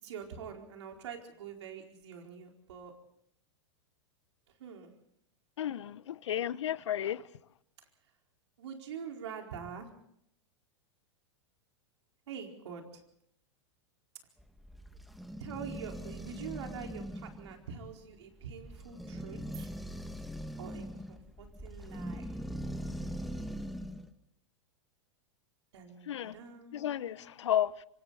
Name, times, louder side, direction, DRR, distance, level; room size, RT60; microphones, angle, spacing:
voice 1, 0.0-2.9 4.6-4.9 8.6-9.9 12.3-13.0 15.4-19.8 20.6-22.5 25.7-27.5, right 7 dB, 70° right, 4.5 m, -45 dB
voice 2, 5.6-7.2 26.1-26.3 26.7-27.8, left 11 dB, 75° left, 0.8 m, -33 dB
sound 1, 14.4-24.1, equal, ahead, 1.8 m, -41 dB
26.0 x 25.5 x 4.2 m
hypercardioid pair, 100°, 15 cm